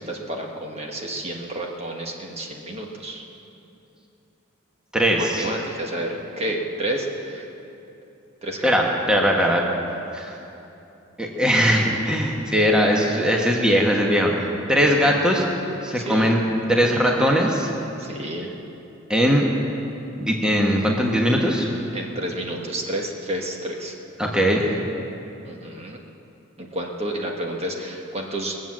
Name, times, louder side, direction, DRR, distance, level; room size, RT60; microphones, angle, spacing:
voice 1, 0.0-3.2 5.1-7.5 8.4-8.7 14.9-15.5 15.9-16.3 18.0-18.5 21.9-23.9 25.4-26.0 26.6-28.6, right 1 dB, 30° right, 0 dB, 1.3 m, -30 dB
voice 2, 4.9-5.5 8.6-9.6 10.1-10.3 11.2-14.4 14.7-15.4 15.8-16.4 16.7-17.7 19.1-19.4 20.2-21.7 24.2-24.7, equal, 5° right, -1 dB, 1.3 m, -20 dB
21.5 x 7.7 x 7.4 m, 2.9 s
head